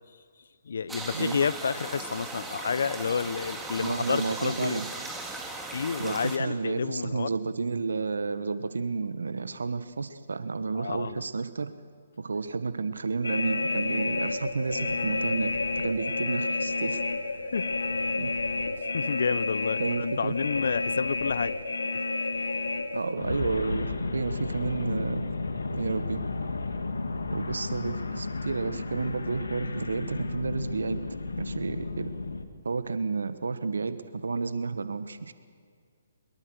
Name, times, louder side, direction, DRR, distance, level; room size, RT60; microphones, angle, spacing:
voice 1, 0.6-4.8 5.7-7.3 10.7-11.2 17.5-17.7 18.9-21.5, left 6 dB, 65° left, 19 dB, 0.7 m, -30 dB
sound 1, 0.9-6.4, right 2 dB, 5° right, 2.3 m, -38 dB
voice 2, 3.8-4.9 6.0-11.7 12.2-15.5 15.8-17.0 18.2-18.3 19.8-20.4 22.9-25.2 25.7-26.2 27.3-31.0 31.4-32.1 32.6-35.3, right 4 dB, 75° right, 12 dB, 1.5 m, -31 dB
sound 2, 13.2-32.4, left 3 dB, 80° left, 1.8 m, -31 dB
24.0 x 22.0 x 6.5 m, 2.1 s
figure-of-eight pair, 135°, 0 cm